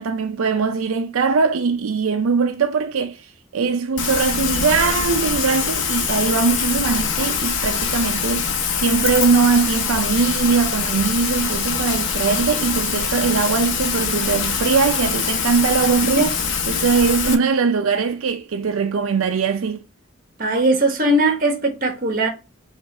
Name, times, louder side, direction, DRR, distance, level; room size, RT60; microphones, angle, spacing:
voice 1, 0.0-3.2 3.5-16.4 16.7-19.8, right 5 dB, 90° right, 0.5 m, -21 dB
Rain, 4.0-17.4, left 6 dB, 65° left, 0.8 m, -23 dB
voice 2, 20.4-22.3, right 1 dB, 40° right, 1.2 m, -19 dB
5.3 x 2.5 x 3.2 m
head